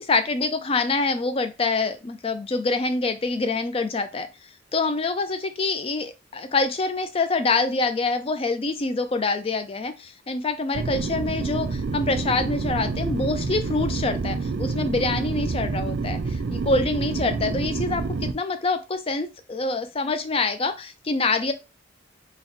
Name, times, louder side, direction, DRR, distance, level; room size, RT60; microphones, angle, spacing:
voice 1, 0.0-4.3 4.7-21.5, left 3 dB, 30° left, 10 dB, 0.4 m, -26 dB
sound 1, 10.7-18.3, right 4 dB, 55° right, 0.4 m, -28 dB
4.0 x 2.2 x 4.2 m, 0.26 s
head